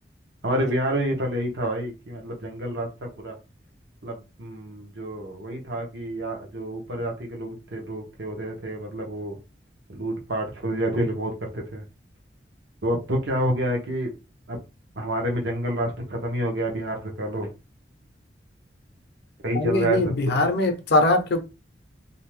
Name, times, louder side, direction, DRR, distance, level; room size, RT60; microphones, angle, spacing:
voice 1, 0.4-3.3 4.0-9.4 9.9-11.8 12.8-14.1 14.5-14.6 15.0-17.5 19.4-20.0, right 1 dB, 70° right, 0.8 m, -28 dB
voice 2, 19.5-21.4, left 2 dB, 60° left, 0.5 m, -21 dB
2.6 x 2.2 x 3.1 m
head